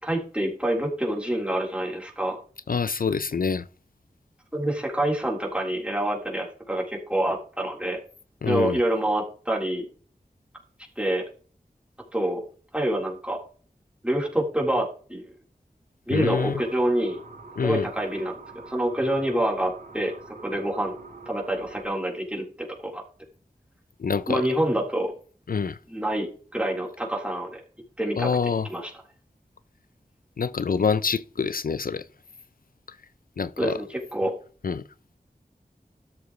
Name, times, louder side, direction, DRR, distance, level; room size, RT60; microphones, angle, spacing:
voice 1, 0.0-2.4 4.5-8.0 8.5-9.8 11.0-11.2 12.1-12.4 12.7-13.4 14.0-15.2 16.1-17.2 17.6-18.3 18.7-20.1 20.4-21.0 21.3-23.0 24.3-25.1 25.9-27.6 28.0-28.3 28.7-28.9 33.6-34.3, right 1 dB, 10° right, 3.9 m, -26 dB
voice 2, 2.7-3.6 8.4-8.8 16.1-16.6 17.6-17.9 24.0-24.4 25.5-25.8 28.2-28.7 30.4-32.0 33.4-33.8 34.6-34.8, left 5 dB, 70° left, 0.4 m, -26 dB
sound 1, 16.3-21.8, right 3 dB, 65° right, 3.6 m, -45 dB
13.0 x 7.1 x 3.2 m
wide cardioid pair, 55°, 15 cm